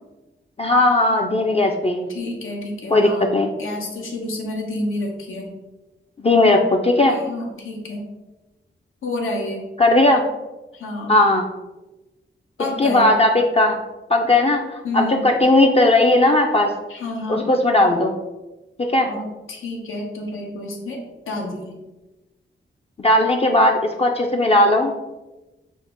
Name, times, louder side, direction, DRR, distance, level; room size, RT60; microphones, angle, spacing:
voice 1, 0.6-2.1 2.9-3.5 6.2-7.2 9.8-10.2 11.1-11.5 12.8-13.8 14.1-16.7 17.3-18.2 18.8-19.1 23.0-24.9, left 2 dB, 30° left, 1 dB, 0.4 m, -17 dB
voice 2, 2.1-3.3 3.6-5.5 7.1-8.1 9.0-9.6 10.7-11.1 12.6-13.1 14.8-15.3 16.9-17.5 19.0-21.8, left 2 dB, 85° left, 1 dB, 0.9 m, -29 dB
6.1 x 2.0 x 3.5 m, 1.1 s
cardioid pair, 70°, 21 cm